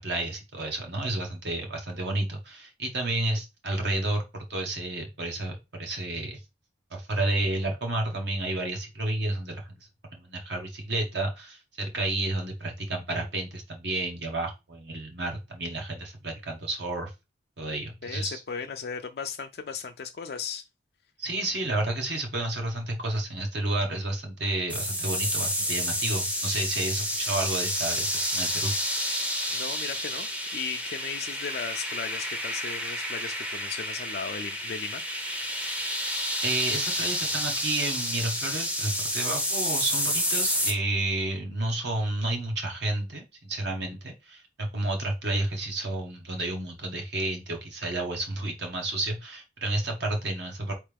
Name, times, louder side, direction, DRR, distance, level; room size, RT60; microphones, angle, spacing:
voice 1, 0.0-6.4 6.9-9.6 10.1-17.1 17.6-18.4 21.2-28.7 36.4-50.7, right 2 dB, 65° right, 1.1 m, -31 dB
voice 2, 18.0-20.7 29.5-35.0, left 6 dB, 55° left, 0.4 m, -36 dB
sound 1, 24.7-40.7, equal, 5° right, 0.6 m, -30 dB
4.3 x 3.3 x 3.4 m
head